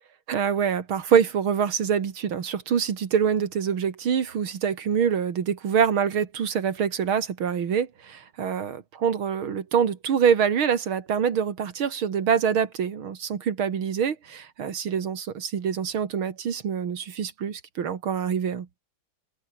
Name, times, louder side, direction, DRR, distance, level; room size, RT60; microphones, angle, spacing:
voice 1, 0.3-18.7, right 7 dB, 90° right, 2.8 m, -25 dB
omnidirectional pair, 2.2 m